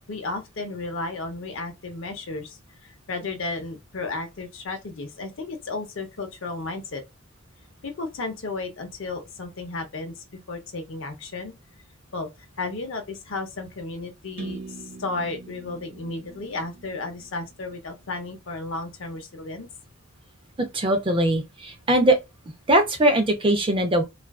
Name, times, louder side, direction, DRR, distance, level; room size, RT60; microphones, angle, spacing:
voice 1, 0.1-7.0 7.8-11.5 12.1-12.3 12.6-19.7, left 3 dB, 65° left, 0.6 m, -33 dB
sound 1, 14.4-18.2, right 3 dB, 85° right, 0.8 m, -42 dB
voice 2, 20.7-22.2 22.7-24.0, right 1 dB, 25° right, 0.5 m, -20 dB
2.4 x 2.3 x 2.2 m
head